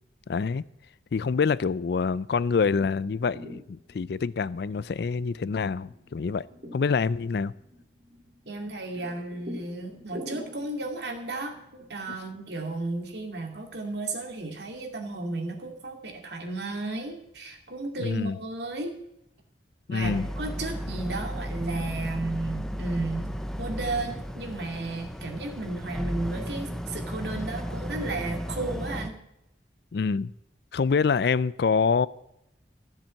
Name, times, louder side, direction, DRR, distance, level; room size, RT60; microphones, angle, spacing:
voice 1, 0.3-0.6 1.1-6.4 6.7-7.5 18.0-18.4 19.9-20.3 29.9-30.3 30.7-32.1, left 5 dB, 60° left, 0.4 m, -26 dB
sound 1, 3.0-12.7, equal, 45° right, 3.1 m, -46 dB
voice 2, 8.5-18.9 19.9-23.3 23.6-29.2, right 2 dB, 65° right, 2.3 m, -34 dB
Boat Water vehicle, 20.0-29.1, equal, 5° left, 0.6 m, -34 dB
13.5 x 7.5 x 7.5 m
head